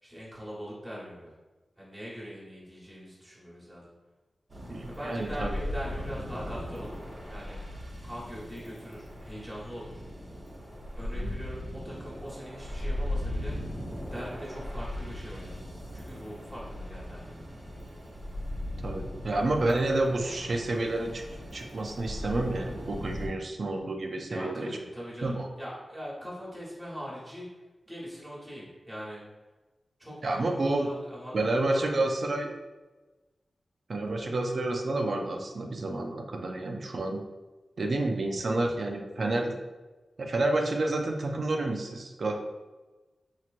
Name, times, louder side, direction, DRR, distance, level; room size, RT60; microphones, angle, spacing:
voice 1, 0.0-1.3 1.8-3.9 4.8-7.0 7.3-7.6 8.0-10.0 11.0-13.6 14.1-15.6 15.9-17.4 24.3-27.5 27.8-29.2 30.0-32.1, equal, 10° right, -7 dB, 1.3 m, -41 dB
sound 1, 4.5-23.3, left 1 dB, 40° right, 0.9 m, -38 dB
voice 2, 4.6-5.5 11.1-11.3 18.8-24.7 25.2-25.5 30.2-30.9 31.3-32.5 33.9-37.2 37.8-39.6 40.2-42.3, right 2 dB, 60° right, 2 dB, 0.5 m, -29 dB
4.4 x 2.9 x 2.5 m, 1.2 s
wide cardioid pair, 110°, 0 cm